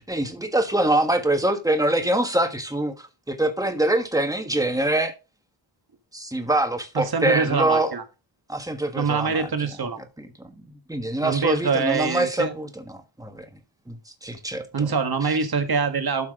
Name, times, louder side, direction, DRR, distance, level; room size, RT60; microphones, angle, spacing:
voice 1, 0.0-5.1 6.1-7.9 8.5-9.5 10.2-13.4 13.9-14.9 15.2-15.4, right 1 dB, 10° right, 1.5 m, -24 dB
voice 2, 6.9-8.0 8.9-10.0 11.2-12.5 14.7-16.3, right 5 dB, 50° right, 1.6 m, -24 dB
12.5 x 6.0 x 3.7 m
wide cardioid pair, 170°, 46 cm